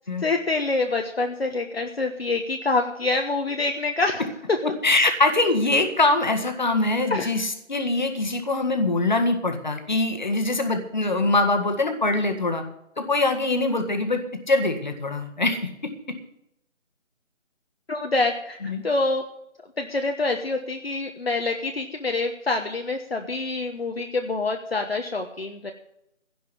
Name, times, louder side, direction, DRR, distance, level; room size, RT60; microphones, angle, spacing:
voice 1, 0.2-4.2 4.5-4.6 7.1-7.3 17.9-18.6 18.8-19.2 19.8-25.7, left 3 dB, 50° left, 4 dB, 1.3 m, -26 dB
voice 2, 4.6-12.6 13.0-14.2 14.5-15.7 18.6-18.8, left 2 dB, 35° left, 6 dB, 1.7 m, -23 dB
16.0 x 5.5 x 10.0 m, 0.78 s
figure-of-eight pair, 175°, 37 cm